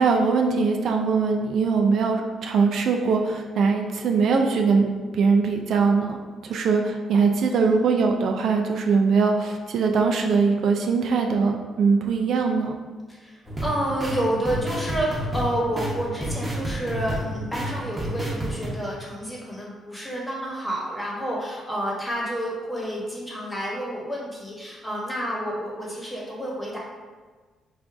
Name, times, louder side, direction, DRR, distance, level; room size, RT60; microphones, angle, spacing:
voice 1, 0.0-4.9 5.1-6.2 6.4-12.7, right 5 dB, 70° right, 3 dB, 0.3 m, -21 dB
voice 2, 7.5-7.9 13.1-26.8, right 1 dB, 10° left, -4 dB, 1.1 m, -29 dB
sound 1, 13.4-18.7, right 1 dB, 20° right, 0.9 m, -30 dB
4.8 x 2.5 x 2.3 m, 1.4 s
cardioid pair, 90°, 0 cm